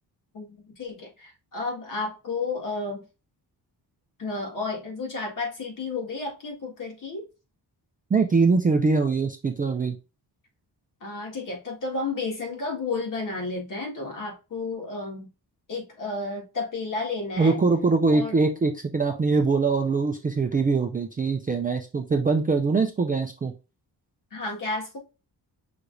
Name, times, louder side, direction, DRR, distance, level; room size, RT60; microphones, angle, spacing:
voice 1, 0.3-3.0 4.2-7.3 11.0-15.3 15.7-17.6 18.1-18.4 24.3-25.0, left 3 dB, 50° left, 0 dB, 1.8 m, -32 dB
voice 2, 8.1-10.0 17.4-23.5, right 4 dB, 20° right, 3 dB, 0.4 m, -23 dB
5.8 x 3.3 x 2.6 m, 0.29 s
wide cardioid pair, 175°, 42 cm